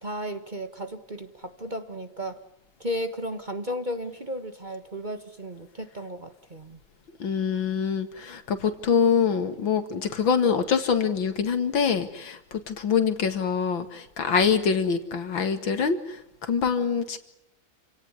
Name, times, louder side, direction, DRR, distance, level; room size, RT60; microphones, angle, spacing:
voice 1, 0.0-2.4 2.8-6.8, equal, 25° right, 8 dB, 1.6 m, -34 dB
voice 2, 7.2-17.2, left 6 dB, 75° left, 10 dB, 2.7 m, -25 dB
28.5 x 18.0 x 9.8 m, 0.82 s
omnidirectional pair, 2.2 m